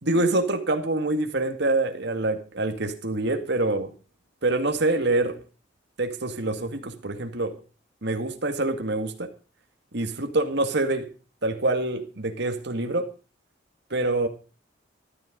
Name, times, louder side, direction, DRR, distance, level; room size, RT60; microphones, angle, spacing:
voice 1, 0.0-3.9 4.4-5.4 6.0-7.6 8.0-9.3 9.9-11.1 11.4-13.1 13.9-14.3, right 2 dB, 65° right, 2.1 m, -25 dB
14.0 x 13.0 x 5.2 m
head